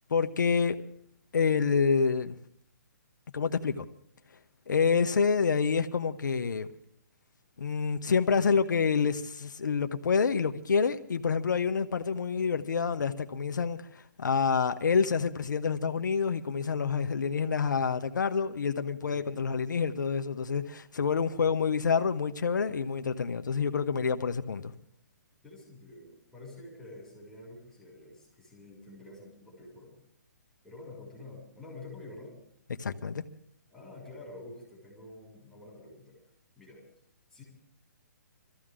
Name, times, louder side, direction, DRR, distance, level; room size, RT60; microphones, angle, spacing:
voice 1, 0.1-0.8 1.3-2.4 3.3-3.9 4.7-6.7 7.6-24.7 32.8-33.2, left 5 dB, 85° left, 1.0 m, -27 dB
voice 2, 19.0-19.5 25.4-30.0 30.6-32.4 33.7-36.2 36.6-36.8 37.3-37.4, left 2 dB, ahead, 6.3 m, -48 dB
24.0 x 14.5 x 3.8 m
hypercardioid pair, 160°, 10 cm